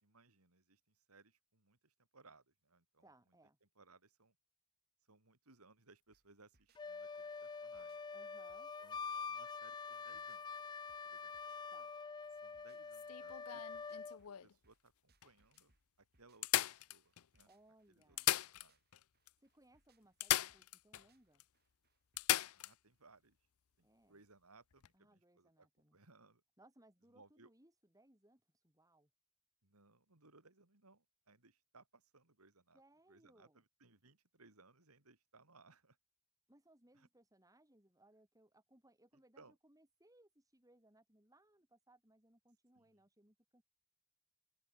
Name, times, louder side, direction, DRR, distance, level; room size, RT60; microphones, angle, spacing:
voice 1, 0.0-3.1 3.6-4.4 5.1-8.0 8.8-9.0 9.3-10.4 11.0-11.4 12.3-13.9 14.2-15.7 16.0-17.5 17.9-18.8 22.5-23.4 23.8-26.4 27.1-27.5 29.6-32.8 33.1-36.0 36.9-37.1 39.1-39.6 42.7-43.0, right 3 dB, 80° right, 3.3 m, -66 dB
voice 2, 3.0-3.6 8.1-8.7 11.7-11.9 17.4-18.3 19.4-21.4 23.8-24.2 24.9-26.0 26.6-29.1 32.7-33.6 36.5-43.6, right 1 dB, 15° right, 7.1 m, -69 dB
sound 1, 6.1-22.7, right 3 dB, 45° right, 7.7 m, -79 dB
Wind instrument woodwind instrument, 6.8-14.2, left 5 dB, 20° left, 0.3 m, -46 dB
sound 2, 12.9-14.5 15.2-15.3 15.6-15.7 16.4-17.4 18.0-19.0 19.3-19.4 20.2-21.1 21.4-21.5 22.2-22.7 24.7-24.9, left 13 dB, 75° left, 0.6 m, -37 dB
open air
head